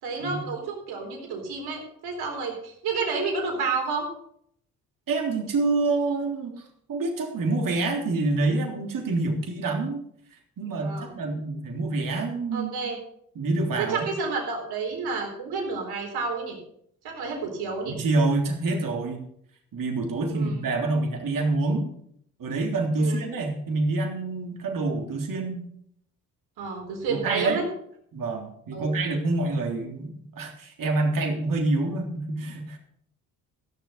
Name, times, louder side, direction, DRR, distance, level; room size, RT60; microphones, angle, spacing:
voice 1, 0.0-4.1 10.8-11.2 12.5-13.0 13.8-16.6 17.0-18.0 20.3-20.6 23.0-23.2 26.6-27.6 28.7-28.9, right 4 dB, 70° right, 2 dB, 4.0 m, -30 dB
voice 2, 5.1-6.6 6.9-10.0 10.6-12.7 13.4-14.1 17.9-19.2 19.7-21.9 22.4-25.7 27.1-27.6 28.1-32.8, right 3 dB, 55° right, 1 dB, 3.6 m, -27 dB
14.5 x 7.0 x 6.7 m, 0.68 s
hypercardioid pair, 55°, 39 cm